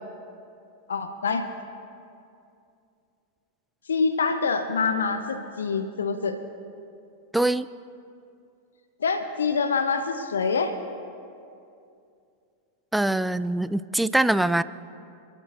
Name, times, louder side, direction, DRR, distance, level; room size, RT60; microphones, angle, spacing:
voice 1, 0.9-1.4 3.9-6.4 9.0-10.8, left 5 dB, 70° left, 8 dB, 0.8 m, -25 dB
voice 2, 7.3-7.7 12.9-14.6, right 1 dB, 5° right, 15 dB, 0.4 m, -23 dB
28.0 x 12.5 x 2.5 m, 2.5 s
figure-of-eight pair, 90°, 0 cm